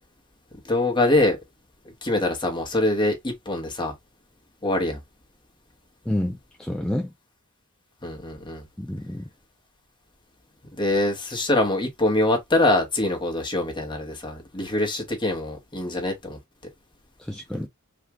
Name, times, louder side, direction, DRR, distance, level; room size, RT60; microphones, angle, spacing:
voice 1, 0.6-1.4 2.0-3.9 4.6-5.0 8.0-8.6 10.7-16.4, left 1 dB, 25° left, 1.1 m, -24 dB
voice 2, 6.1-7.1 8.8-9.3 17.2-17.7, left 1 dB, 5° left, 0.3 m, -29 dB
3.5 x 2.4 x 2.9 m
head